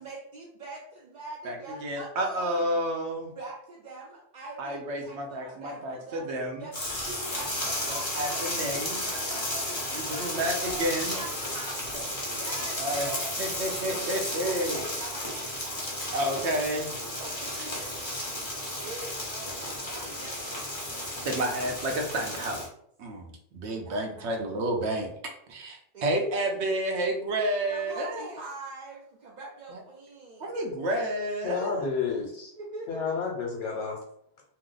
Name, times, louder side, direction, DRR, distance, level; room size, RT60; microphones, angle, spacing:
voice 1, 0.0-2.6 3.4-6.3 6.5-13.6 14.4-16.3 17.2-18.4 18.8-21.1 23.8-24.4 25.9-26.1 26.6-27.1 27.7-30.6 32.6-33.2, right 2 dB, 55° right, -2 dB, 0.5 m, -43 dB
voice 2, 1.8-3.3 4.6-6.7 7.9-9.1 9.9-11.2 11.9-12.0 12.8-13.1 13.4-14.8 16.1-16.9 21.2-22.7 23.0-25.1 25.5-28.3 29.7-29.8 30.4-31.8, right 1 dB, 75° right, 2 dB, 0.9 m, -30 dB
sound 1, 6.7-22.7, left 1 dB, 25° left, 0.9 m, -33 dB
voice 3, 31.4-32.5 32.9-34.0, left 5 dB, 90° left, -2 dB, 1.0 m, -30 dB
2.7 x 2.1 x 3.7 m, 0.69 s
omnidirectional pair, 1.2 m